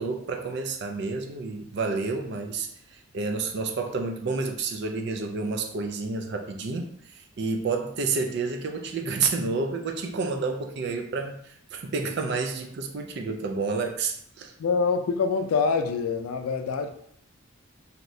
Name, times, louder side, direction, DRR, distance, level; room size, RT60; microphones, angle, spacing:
voice 1, 0.0-14.5, right 4 dB, 50° right, 4 dB, 0.4 m, -30 dB
voice 2, 14.6-16.9, left 5 dB, 85° left, 6 dB, 0.4 m, -25 dB
3.1 x 2.7 x 2.6 m, 0.68 s
head